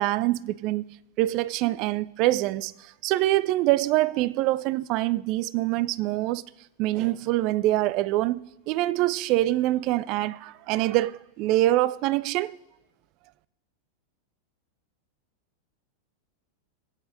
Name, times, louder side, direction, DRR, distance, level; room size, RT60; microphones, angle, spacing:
voice 1, 0.0-6.4 6.8-8.4 8.7-12.6, right 16 dB, 40° right, 0.3 m, -25 dB
22.5 x 9.1 x 2.5 m
figure-of-eight pair, 90°, 0 cm